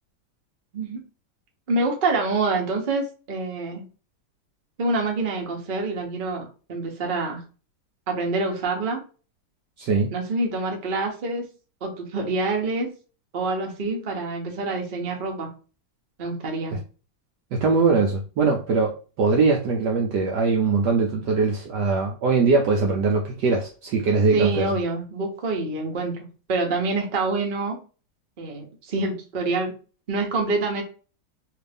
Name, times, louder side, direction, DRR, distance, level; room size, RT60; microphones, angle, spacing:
voice 1, 1.7-3.8 4.8-6.4 6.7-7.4 8.1-9.0 10.1-11.4 11.8-12.9 13.3-15.5 16.2-16.8 24.3-26.1 26.5-27.8 28.4-29.7 30.1-30.8, right 3 dB, 50° right, 0.6 m, -26 dB
voice 2, 9.8-10.1 16.7-16.8 17.5-24.7, right 4 dB, 75° right, 1.0 m, -21 dB
3.3 x 2.4 x 3.4 m
omnidirectional pair, 2.3 m